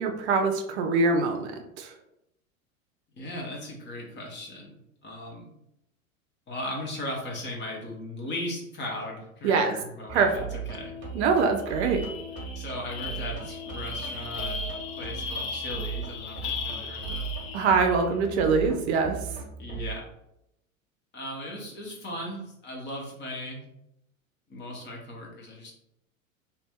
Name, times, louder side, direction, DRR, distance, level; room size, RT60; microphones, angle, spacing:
voice 1, 0.0-1.5 1.8-1.9 9.4-9.7 10.1-10.3 11.1-12.1 17.5-19.2, right 4 dB, 55° right, 5 dB, 0.6 m, -23 dB
voice 2, 3.2-5.5 6.5-11.0 12.5-14.6 15.0-17.3 19.6-20.1 21.1-23.6 24.5-25.7, left 1 dB, 25° left, 0 dB, 1.0 m, -37 dB
sound 1, 10.1-19.9, right 6 dB, 25° right, 1.2 m, -38 dB
sound 2, 11.2-11.3 11.6-18.0, left 5 dB, 50° left, 0.7 m, -37 dB
2.8 x 2.5 x 3.5 m, 0.83 s
figure-of-eight pair, 80°, 41 cm